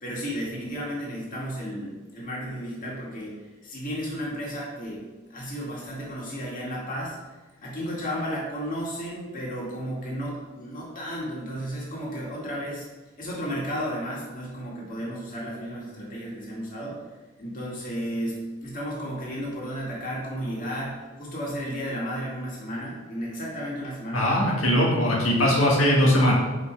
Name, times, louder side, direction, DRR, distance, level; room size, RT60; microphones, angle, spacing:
voice 1, 0.0-5.0 5.3-7.2 7.6-12.9 13.2-17.0 17.4-24.4, equal, 40° left, -5 dB, 2.1 m, -33 dB
voice 2, 24.1-26.3, equal, 90° left, -3 dB, 1.6 m, -20 dB
6.1 x 5.5 x 4.6 m, 1.2 s
head